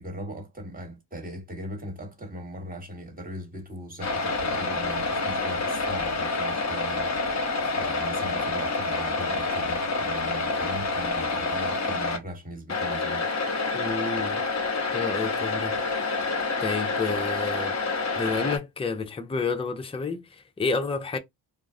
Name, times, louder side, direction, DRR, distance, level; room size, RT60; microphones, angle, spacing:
voice 1, 0.0-7.4 7.7-13.3, equal, 20° right, 1.4 m, -39 dB
sound 1, 4.0-12.2 12.7-18.6, left 3 dB, 35° left, 1.0 m, -28 dB
voice 2, 13.7-14.4 14.9-15.8 16.6-17.8 18.2-21.2, left 4 dB, 15° left, 0.5 m, -30 dB
2.2 x 2.0 x 3.6 m
cardioid pair, 80°, 45 cm